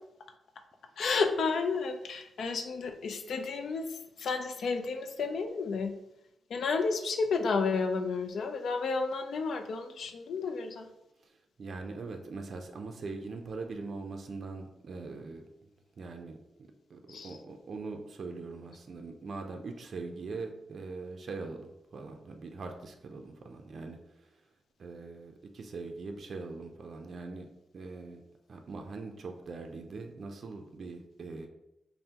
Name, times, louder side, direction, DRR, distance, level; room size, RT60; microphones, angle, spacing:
voice 1, 1.0-5.9 6.5-10.9 17.1-17.4, left 4 dB, 70° left, 7 dB, 0.4 m, -31 dB
voice 2, 11.2-15.7 16.0-16.4 16.9-24.4 24.8-27.5 27.7-28.2 28.5-31.5, right 3 dB, 55° right, 4 dB, 0.4 m, -42 dB
5.4 x 2.1 x 2.8 m, 0.87 s
wide cardioid pair, 115°, 0 cm